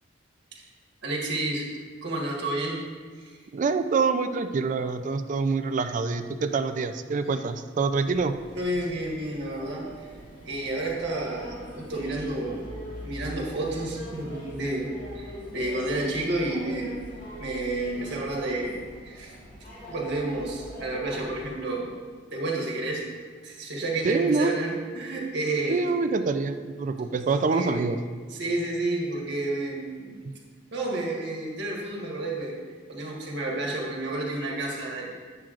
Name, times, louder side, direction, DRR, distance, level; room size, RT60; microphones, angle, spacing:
voice 1, 1.0-1.7 2.0-2.8 3.2-3.4 8.6-10.1 10.4-12.6 13.0-14.9 15.1-16.9 17.4-19.3 19.9-21.9 22.3-23.0 23.4-25.8 27.5-27.8 28.3-30.2 30.7-32.5 32.9-35.2, right 2 dB, 65° right, -2 dB, 1.4 m, -30 dB
voice 2, 3.5-8.4 24.0-24.8 25.7-28.0, right 4 dB, 40° right, 9 dB, 0.3 m, -26 dB
sound 1, 8.0-21.6, equal, 45° left, 1.8 m, -42 dB
8.8 x 7.5 x 2.5 m, 1.5 s
head